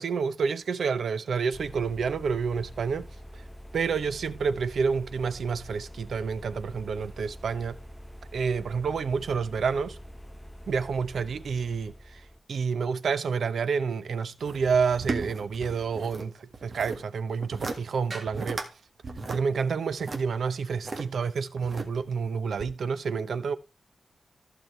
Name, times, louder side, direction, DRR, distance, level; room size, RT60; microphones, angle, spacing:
voice 1, 0.0-3.1 3.3-3.4 3.7-7.8 8.3-10.0 10.7-12.2 12.5-18.6 19.3-23.6, right 5 dB, 85° right, 0.8 m, -29 dB
sound 1, 1.5-12.4, equal, 5° left, 0.6 m, -45 dB
sound 2, 14.4-16.3 16.5-17.0 17.4-17.8 18.1-18.7 19.0-21.0 21.6-22.2 22.6-22.7, right 3 dB, 45° right, 1.7 m, -35 dB
14.5 x 6.1 x 3.2 m
wide cardioid pair, 170°, 0 cm